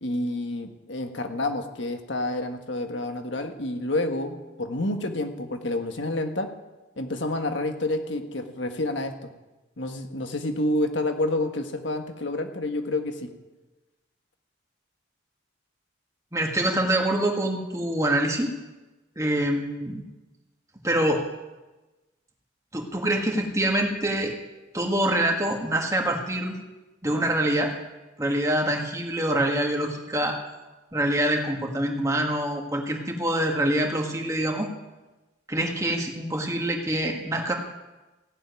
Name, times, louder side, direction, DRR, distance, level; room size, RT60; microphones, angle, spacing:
voice 1, 0.0-6.5 7.0-9.3 9.8-13.3, left 1 dB, 75° left, 6 dB, 1.6 m, -29 dB
voice 2, 16.3-18.5 19.1-20.0 20.8-21.2 22.7-24.4 24.7-26.6 27.0-27.7 28.2-30.4 30.9-34.7 35.5-37.5, right 1 dB, 15° right, 2 dB, 1.7 m, -25 dB
16.0 x 7.3 x 9.4 m, 1.1 s
head